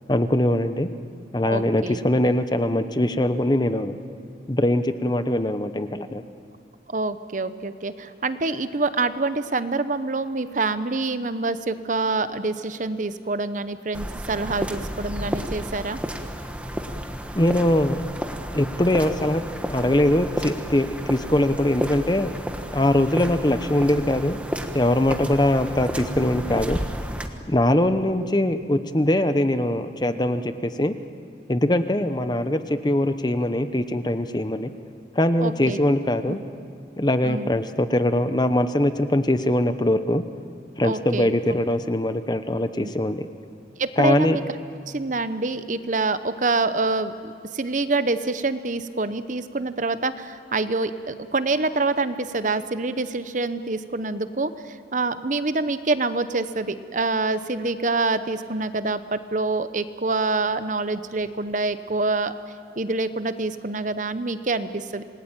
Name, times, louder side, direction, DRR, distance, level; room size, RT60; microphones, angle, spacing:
voice 1, 0.1-0.9 1.3-4.0 4.5-6.2 17.3-18.0 18.5-19.4 19.7-22.3 22.7-24.4 24.7-26.8 27.5-30.9 31.5-34.7 35.1-36.4 37.0-40.2 40.8-43.3 44.0-44.4, left 1 dB, 25° left, 10 dB, 0.9 m, -22 dB
voice 2, 1.4-2.0 6.9-16.0 35.4-35.8 37.2-37.5 40.8-41.6 42.8-42.9 43.8-44.4 44.9-62.3 62.8-65.0, right 3 dB, 45° right, 12 dB, 0.9 m, -26 dB
sound 1, 13.9-27.3, equal, 5° right, 1.3 m, -32 dB
27.5 x 20.0 x 9.0 m, 2.2 s
head